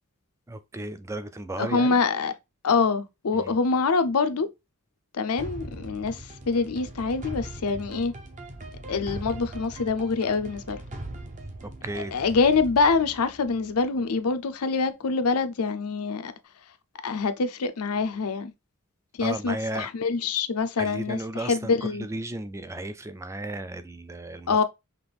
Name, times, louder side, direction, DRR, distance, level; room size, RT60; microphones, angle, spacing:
voice 1, 0.5-2.0 3.3-3.5 11.6-12.1 19.2-19.9 20.8-24.6, right 2 dB, 15° right, 0.3 m, -34 dB
voice 2, 1.6-2.3 2.6-4.5 5.1-8.1 8.9-10.8 11.9-16.3 17.0-18.5 19.2-22.1 24.5-24.6, left 4 dB, 80° left, 0.6 m, -25 dB
sound 1, 5.4-14.2, right 1 dB, 35° right, 0.7 m, -40 dB
5.9 x 2.5 x 3.4 m
head